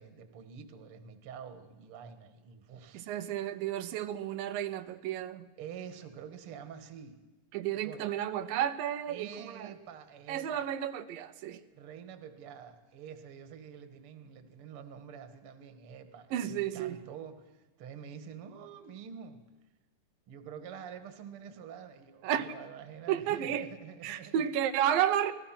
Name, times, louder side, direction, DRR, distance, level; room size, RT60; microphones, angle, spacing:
voice 1, 0.0-3.1 5.6-7.2 7.8-8.0 9.1-10.7 11.7-19.4 20.3-24.5, right 7 dB, 50° right, 9 dB, 2.1 m, -47 dB
voice 2, 2.9-5.5 7.5-9.7 10.3-11.6 16.3-17.0 22.2-22.5 23.1-23.7 24.0-25.3, right 10 dB, 85° right, 9 dB, 2.5 m, -32 dB
27.5 x 19.0 x 6.0 m, 1.2 s
omnidirectional pair, 3.9 m